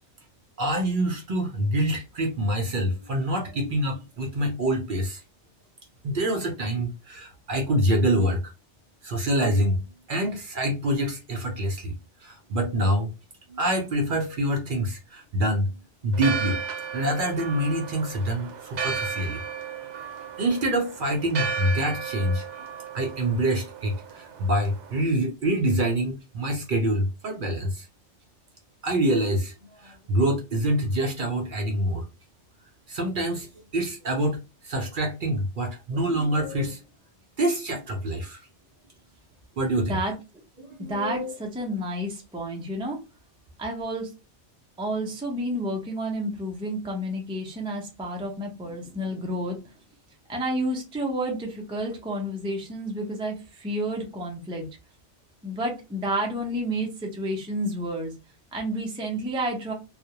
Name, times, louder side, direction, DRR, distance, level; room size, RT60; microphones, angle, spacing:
voice 1, 0.6-5.2 6.0-8.5 9.0-9.8 10.1-13.1 13.5-15.7 16.0-16.6 16.9-19.4 20.4-22.5 22.9-27.9 28.8-32.1 32.9-33.5 33.7-36.8 37.4-38.4 39.6-40.0 40.6-41.3, right 1 dB, 60° right, 0.6 m, -26 dB
Church bell, 16.1-25.0, right 6 dB, 75° right, 0.9 m, -34 dB
voice 2, 40.8-43.0 43.6-44.1 44.8-49.7 50.3-54.7 55.4-58.1 58.5-59.7, right 1 dB, 10° right, 0.3 m, -30 dB
2.3 x 2.0 x 2.7 m
omnidirectional pair, 1.2 m